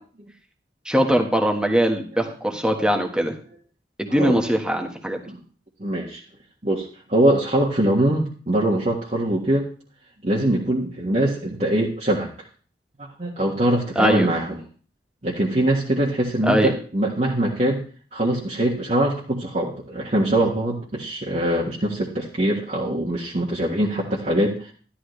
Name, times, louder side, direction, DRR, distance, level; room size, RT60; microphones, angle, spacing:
voice 1, 0.8-3.3 4.0-5.2 13.9-14.3 16.4-16.7, equal, 5° right, 3 dB, 1.4 m, -21 dB
voice 2, 4.1-4.4 5.3-5.4 5.8-6.2 6.6-9.7 10.2-12.3 13.2-14.6 15.2-17.8 18.1-24.7, right 1 dB, 40° right, -4 dB, 1.6 m, -23 dB
12.5 x 11.5 x 3.3 m, 0.40 s
head